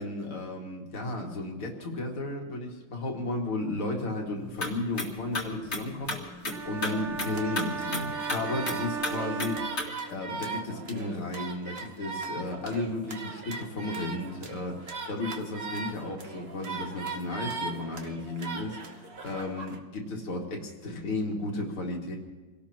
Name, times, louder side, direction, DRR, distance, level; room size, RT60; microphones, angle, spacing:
voice 1, 0.0-22.2, left 2 dB, 75° left, 0 dB, 3.1 m, -34 dB
sound 1, 4.4-9.9, left 2 dB, 30° left, 2.1 m, -35 dB
sound 2, 6.5-10.4, right 6 dB, 65° right, 0.7 m, -36 dB
sound 3, 7.3-19.8, right 4 dB, 40° right, 1.0 m, -39 dB
27.0 x 17.5 x 3.0 m, 1.2 s
omnidirectional pair, 2.4 m